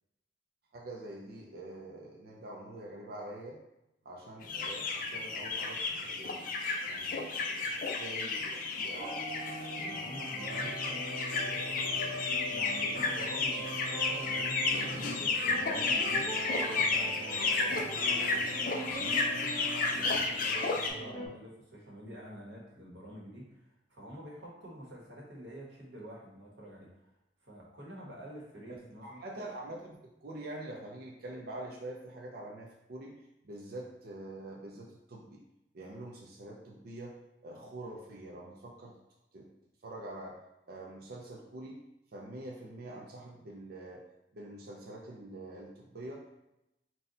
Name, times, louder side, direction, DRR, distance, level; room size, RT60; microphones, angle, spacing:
voice 1, 0.7-3.6 4.0-6.5 6.8-9.5 10.6-10.7 11.1-12.2 29.0-33.2 33.4-35.4 35.7-37.2 37.4-38.9 39.3-39.5 39.8-40.4 40.7-41.8 42.1-44.0 44.3-46.3, right 1 dB, 60° right, -2 dB, 0.6 m, -45 dB
sound 1, 4.4-20.9, left 3 dB, 50° left, 0.5 m, -32 dB
sound 2, 9.0-21.3, right 1 dB, 25° left, 1.2 m, -41 dB
voice 2, 9.8-11.0 12.5-26.9 27.4-29.2, equal, 90° right, -3 dB, 1.3 m, -48 dB
4.1 x 2.3 x 3.9 m, 0.88 s
head